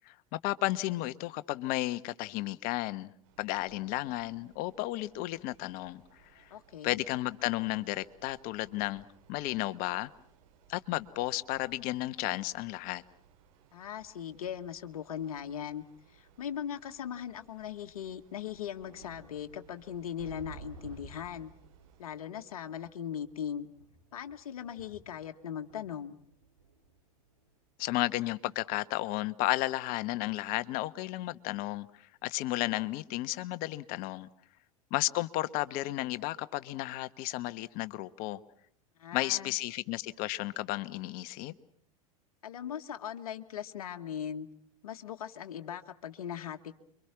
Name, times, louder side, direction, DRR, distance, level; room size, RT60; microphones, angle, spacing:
voice 1, 0.1-3.1 3.4-6.0 6.3-6.5 6.8-10.1 10.7-13.0 27.8-34.3 34.9-38.4 39.1-41.5, left 17 dB, 50° left, 1.3 m, -33 dB
sound 1, 3.2-22.1, right 6 dB, 65° right, 7.9 m, -64 dB
voice 2, 6.5-7.0 13.7-15.8 16.1-21.5 22.0-23.7 24.1-26.2 39.0-39.6 42.4-44.5 44.8-46.7, left 9 dB, 75° left, 1.5 m, -39 dB
sound 2, 14.7-14.8 15.9-16.0 17.1-17.2 17.5-17.6 18.1-28.2 28.6-28.8, right 4 dB, 90° right, 5.0 m, -54 dB
29.5 x 24.0 x 6.0 m
hypercardioid pair, 85°, 18 cm